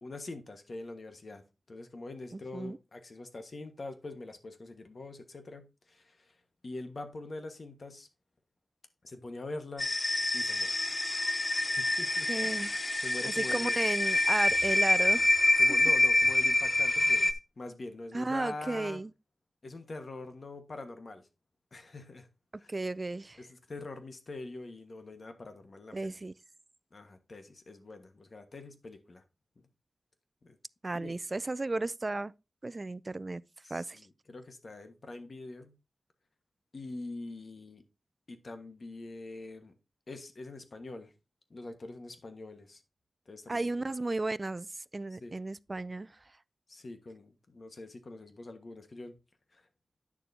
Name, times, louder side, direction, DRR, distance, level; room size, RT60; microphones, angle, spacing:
voice 1, 0.0-1.4 1.7-6.3 6.6-8.1 9.0-9.9 10.3-10.8 11.6-12.7 12.9-13.8 15.6-19.0 19.6-21.3 21.7-22.3 22.6-22.7 23.4-26.2 26.9-29.2 29.6-29.7 30.4-30.6 30.9-31.1 33.6-35.8 36.7-37.8 38.3-39.7 40.1-41.1 41.5-42.8 43.3-43.9 45.1-45.3 46.7-49.1 49.5-49.6, left 2 dB, 55° left, 1.4 m, -44 dB
voice 2, 2.3-2.8 12.3-12.8 13.2-15.3 15.5-15.6 18.1-19.1 22.7-23.4 25.9-26.3 30.8-32.3 32.6-33.4 33.7-34.0 43.5-44.7 44.9-46.1, right 2 dB, 35° right, 0.3 m, -34 dB
sound 1, 9.8-17.3, left 2 dB, 25° left, 0.6 m, -26 dB
10.0 x 6.8 x 2.7 m
wide cardioid pair, 75°, 0 cm